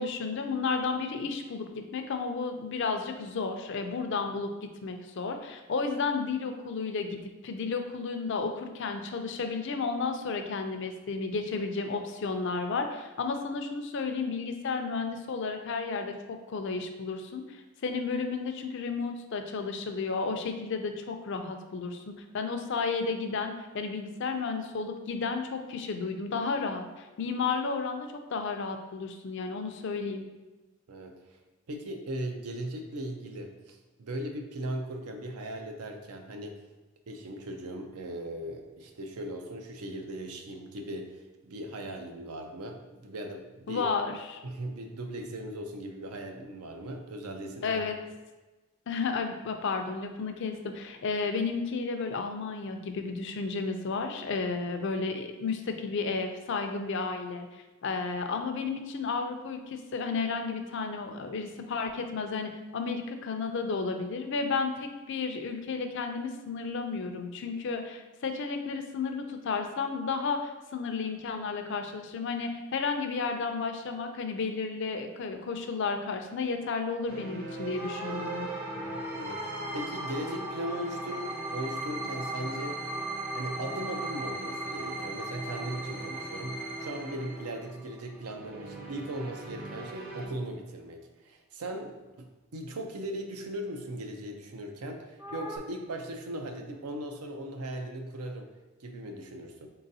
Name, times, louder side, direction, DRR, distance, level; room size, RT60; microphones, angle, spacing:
voice 1, 0.0-4.5 4.8-30.2 43.7-44.4 47.6-48.0 48.9-78.5, left 4 dB, 55° left, 6 dB, 0.4 m, -32 dB
voice 2, 30.9-31.4 31.7-36.6 37.1-41.2 41.4-43.9 44.4-47.8 78.7-79.5 79.7-82.8 83.3-98.5 98.8-99.7, right 1 dB, 85° right, 4 dB, 0.5 m, -38 dB
sound 1, 77.1-90.3, right 2 dB, 40° right, 0.7 m, -40 dB
sound 2, 77.7-88.3 95.2-95.6, equal, 15° right, 0.3 m, -39 dB
4.0 x 3.8 x 2.7 m, 1.2 s
head